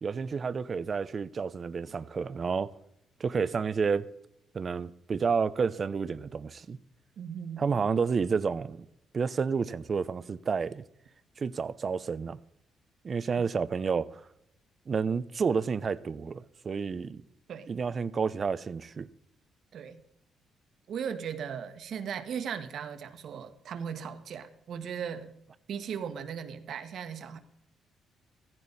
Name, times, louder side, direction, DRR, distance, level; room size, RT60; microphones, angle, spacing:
voice 1, 0.0-2.7 3.2-4.1 4.5-6.8 7.6-8.8 9.1-10.8 11.4-12.4 13.0-14.2 14.9-17.2 17.7-19.1, right 5 dB, 40° right, 0.8 m, -30 dB
voice 2, 7.2-7.7 17.5-17.7 19.7-20.0 20.9-25.3 25.7-27.4, right 7 dB, 65° right, 1.7 m, -37 dB
15.5 x 15.5 x 4.2 m
cardioid pair, 90°, 0 cm